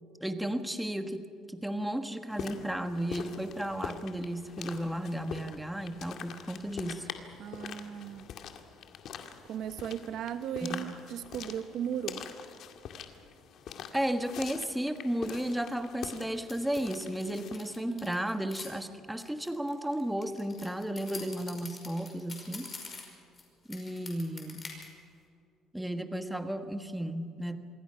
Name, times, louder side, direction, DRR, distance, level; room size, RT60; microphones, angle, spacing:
voice 1, 0.2-7.1 10.6-10.9 13.9-22.7 23.7-24.7 25.7-27.6, right 1 dB, 5° right, 7 dB, 1.4 m, -34 dB
sound 1, 2.3-17.6, left 7 dB, 60° left, 2.0 m, -44 dB
voice 2, 7.4-8.3 9.5-12.2 17.8-18.1, right 9 dB, 65° right, 11 dB, 1.0 m, -37 dB
sound 2, 16.5-18.7 19.2-23.4 23.7-24.9, left 4 dB, 30° left, 5.3 m, -45 dB
27.0 x 21.5 x 5.8 m, 2.4 s
cardioid pair, 130°, 0 cm